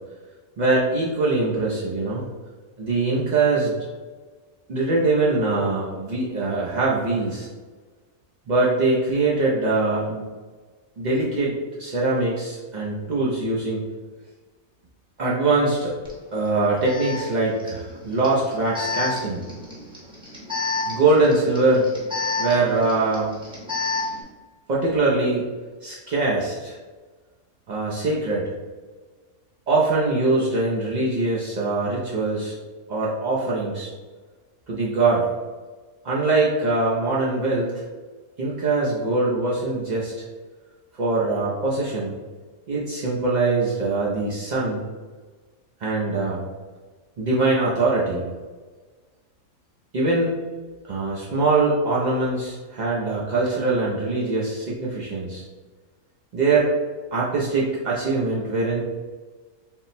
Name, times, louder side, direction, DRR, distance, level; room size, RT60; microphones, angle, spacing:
voice 1, 0.6-2.3 2.8-3.9 4.7-7.5 8.5-10.2 11.0-13.8 15.2-15.9 16.3-19.4 20.9-21.9 22.4-23.3 24.7-25.4 25.8-26.8 27.7-28.5 29.7-32.6 32.9-33.9 34.7-35.3 36.0-37.8 38.4-40.2 40.9-42.1 42.7-44.8 45.8-46.4 47.2-48.2 49.9-50.3 50.9-55.4 56.3-56.7 57.1-58.8, right 3 dB, 65° right, -5 dB, 0.4 m, -22 dB
Alarm, 16.0-16.1 16.8-24.2, left 4 dB, 5° right, 0.7 m, -30 dB
3.8 x 2.0 x 4.0 m, 1.4 s
omnidirectional pair, 1.5 m